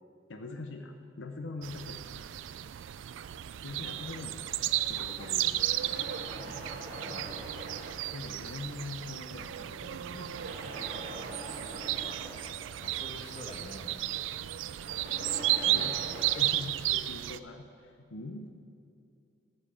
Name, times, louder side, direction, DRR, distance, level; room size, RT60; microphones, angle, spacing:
voice 1, 0.3-2.0 3.6-4.4 4.9-5.6 8.1-10.4 15.7-15.9 16.3-18.5, left 3 dB, 75° left, 5 dB, 0.7 m, -42 dB
sound 1, 1.6-17.4, right 13 dB, 75° right, 0.3 m, -34 dB
sound 2, 4.0-5.2 5.7-8.8 10.1-13.6 14.7-16.5, right 1 dB, 50° right, 1.6 m, -44 dB
voice 2, 7.0-7.4 12.0-12.2 12.8-14.1 14.4-14.5 15.5-16.4, left 1 dB, 35° left, 3 dB, 1.2 m, -47 dB
13.5 x 5.6 x 6.9 m, 2.4 s
head